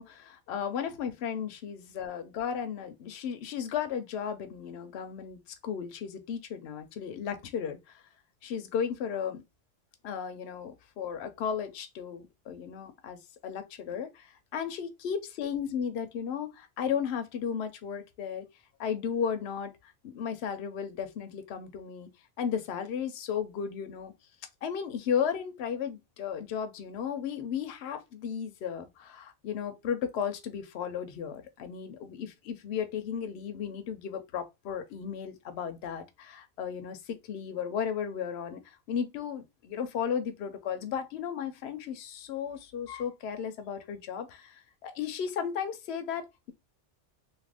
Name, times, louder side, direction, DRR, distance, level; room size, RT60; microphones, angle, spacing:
voice 1, 0.0-7.8 8.4-9.4 10.0-13.2 13.4-14.3 14.5-18.5 18.8-19.7 20.0-22.1 22.4-24.1 24.6-46.5, left 7 dB, 65° left, 0.8 m, -34 dB
2.8 x 2.5 x 3.3 m
omnidirectional pair, 1.2 m